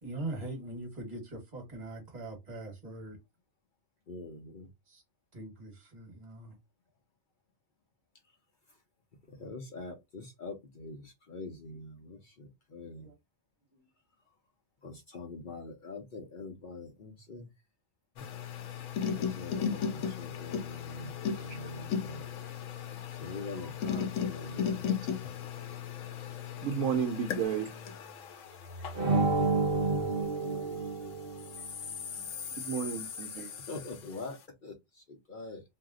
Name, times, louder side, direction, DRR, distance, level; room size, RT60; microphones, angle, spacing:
voice 1, 0.0-3.2 4.9-5.0 5.3-6.6 11.7-11.8 13.0-13.1 13.7-13.9 22.9-23.7 31.5-31.9 32.4-32.6 33.2-33.5, right 2 dB, 35° right, 1.3 m, -43 dB
voice 2, 4.1-4.7 9.4-13.1 14.8-17.5 19.1-22.3 23.2-24.8 33.7-35.6, left 3 dB, 50° left, 0.7 m, -44 dB
sound 1, 18.2-30.8 31.4-34.2, left 7 dB, 75° left, 1.0 m, -37 dB
voice 3, 26.6-27.7 32.6-33.5, right 7 dB, 75° right, 1.0 m, -32 dB
sound 2, 28.9-31.7, right 3 dB, 50° right, 0.8 m, -29 dB
2.7 x 2.0 x 3.5 m
omnidirectional pair, 1.4 m